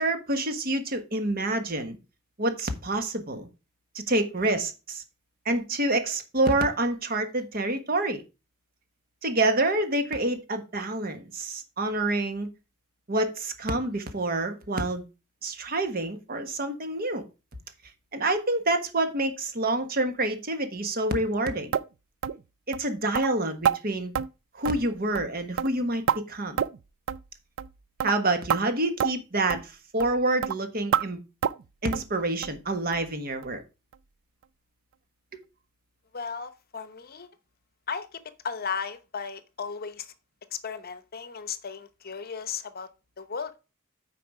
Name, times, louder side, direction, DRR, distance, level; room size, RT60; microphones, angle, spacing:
voice 1, 0.0-2.0 2.4-3.5 3.9-5.0 5.4-8.2 9.2-12.5 13.1-15.0 15.4-17.3 18.1-21.7 22.7-24.1 24.5-26.6 28.0-31.2 31.8-33.6, right 2 dB, 45° right, 1.3 m, -27 dB
sound 1, 21.7-21.9 22.2-22.4 22.7-22.8 23.1-23.3 23.6-23.8 24.1-24.3 24.6-24.9 25.1-25.3 25.6-26.2 26.6-26.8 27.1-27.2 27.6-27.7 28.0-28.2 28.5-28.6 29.0-29.1 29.5-29.6 30.0-30.1 30.4-30.6 30.9-31.1 31.4-31.6 31.9-32.1 32.4-32.6 32.9-33.0 33.4-33.5 33.9-34.0, right 8 dB, 60° right, 0.4 m, -27 dB
voice 2, 36.1-37.3 37.9-40.1 40.5-42.9 43.2-43.6, left 6 dB, 45° left, 0.8 m, -35 dB
9.3 x 4.8 x 4.8 m
head